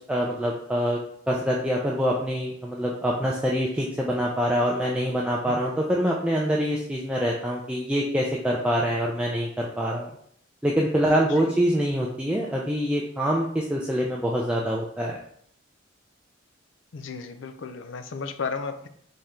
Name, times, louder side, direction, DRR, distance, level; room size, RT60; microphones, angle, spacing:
voice 1, 0.1-1.0 1.3-10.1 10.6-15.2, equal, 5° right, -3 dB, 0.4 m, -25 dB
voice 2, 16.9-18.9, left 5 dB, 70° left, 9 dB, 0.5 m, -34 dB
4.3 x 3.3 x 3.7 m, 0.65 s
head